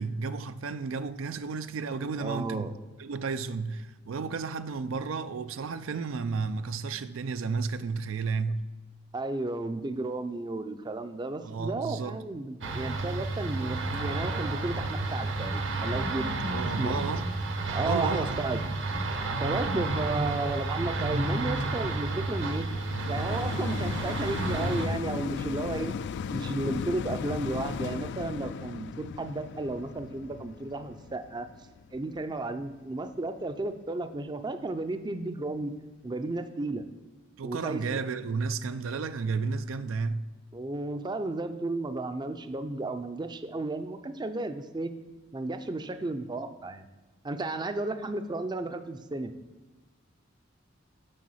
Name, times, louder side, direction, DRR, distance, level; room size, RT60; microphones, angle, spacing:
voice 1, 0.0-8.6 11.4-12.2 16.5-17.3 17.8-18.4 19.5-19.6 37.4-40.3, right 4 dB, 85° right, 0.5 m, -32 dB
voice 2, 2.2-2.7 9.1-16.3 16.6-17.1 17.7-18.6 19.4-22.7 23.1-25.9 26.3-31.5 31.9-35.7 36.0-36.8 37.4-38.1 40.5-44.9 45.3-46.8 47.2-49.3, right 2 dB, 20° right, 0.5 m, -33 dB
sound 1, 12.6-24.9, right 2 dB, 65° right, 1.1 m, -31 dB
sound 2, 21.6-32.9 33.5-33.6, left 6 dB, 60° left, 0.3 m, -37 dB
7.6 x 6.1 x 5.6 m
head